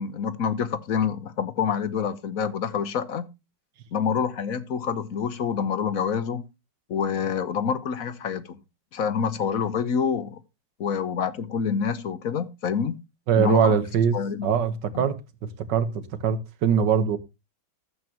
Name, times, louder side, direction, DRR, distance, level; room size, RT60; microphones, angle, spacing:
voice 1, 0.0-3.3 3.9-6.4 6.9-8.6 8.9-10.4 10.8-13.0 13.4-13.8 14.1-14.5 14.9-15.1, left 7 dB, 50° left, 1.3 m, -27 dB
voice 2, 13.3-14.1 14.4-15.2 15.7-17.2, right 7 dB, 65° right, 1.9 m, -22 dB
14.0 x 8.3 x 2.9 m
omnidirectional pair, 2.1 m